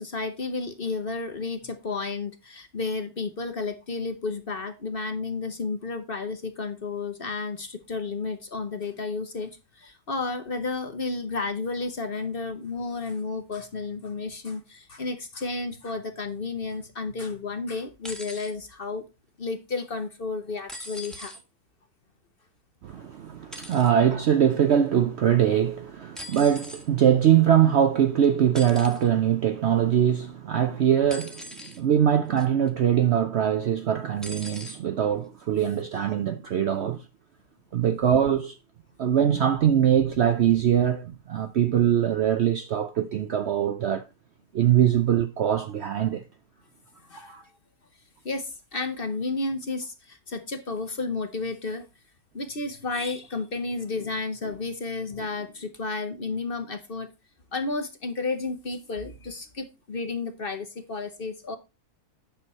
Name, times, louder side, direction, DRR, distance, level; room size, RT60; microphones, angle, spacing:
voice 1, 0.0-19.0 19.4-21.4 22.9-23.1 23.4-23.5 47.0-47.5 48.2-51.8 52.3-57.1 57.5-61.6, left 3 dB, 40° left, 1.0 m, -32 dB
sound 1, 18.0-18.5 20.7-21.4 23.5-23.9 26.2-26.9 28.5-29.0 31.1-31.8 32.4-32.7 34.2-34.8 35.8-35.9, equal, ahead, 1.2 m, -41 dB
voice 2, 22.8-37.0 37.7-38.5 39.0-44.0 44.5-46.2 47.3-47.4, right 9 dB, 65° right, 0.7 m, -22 dB
9.0 x 6.3 x 4.1 m
omnidirectional pair, 1.7 m